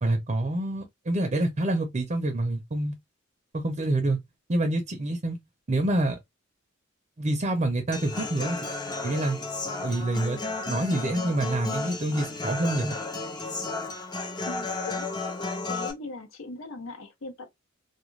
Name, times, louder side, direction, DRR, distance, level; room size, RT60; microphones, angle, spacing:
voice 1, 0.0-3.0 3.5-4.2 4.5-5.4 5.7-6.2 7.2-8.6 9.0-9.4 9.8-13.0, right 1 dB, 35° right, 0.5 m, -27 dB
Human voice / Acoustic guitar, 7.9-15.9, left 3 dB, 20° left, 0.5 m, -33 dB
voice 2, 14.5-15.1 15.7-17.6, left 3 dB, 70° left, 0.8 m, -40 dB
2.3 x 2.2 x 3.1 m
head